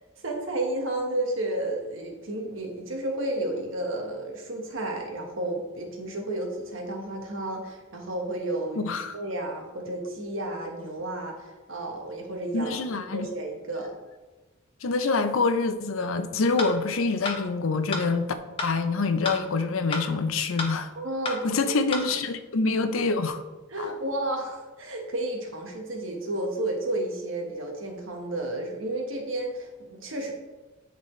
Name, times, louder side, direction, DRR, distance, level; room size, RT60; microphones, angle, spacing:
voice 1, 0.2-13.9 21.0-21.7 23.7-30.3, right 1 dB, 70° right, 1.3 m, -32 dB
voice 2, 12.5-13.3 14.8-18.3 18.6-20.9 21.4-23.4 23.8-24.0, left 3 dB, 75° left, 0.6 m, -26 dB
sound 1, 16.6-16.7 17.2-17.4 17.9-18.0 18.6-18.7 19.2-19.4 19.9-20.1 20.6-20.7 21.2-21.4 21.9-22.0, left 2 dB, 25° left, 0.9 m, -30 dB
10.5 x 4.1 x 3.2 m
head